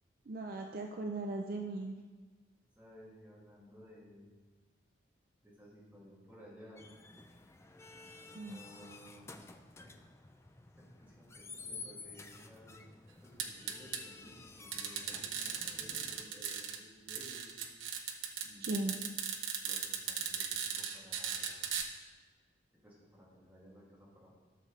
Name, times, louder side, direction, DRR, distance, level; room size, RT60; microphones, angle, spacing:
voice 1, 0.3-1.9 8.4-8.6 18.6-19.0, right 2 dB, 50° right, 3 dB, 0.5 m, -38 dB
voice 2, 2.8-4.4 5.4-6.9 8.1-9.3 9.8-10.1 10.4-12.8 13.2-17.5 18.4-18.9 19.6-21.6 22.8-24.3, equal, 10° right, -8 dB, 2.4 m, -57 dB
sound 1, 6.8-16.2, left 4 dB, 15° left, 0.3 m, -52 dB
sound 2, 13.4-14.0 14.7-16.8 17.1-21.8, right 7 dB, 85° right, 0.9 m, -37 dB
12.5 x 6.5 x 3.2 m, 1.4 s
head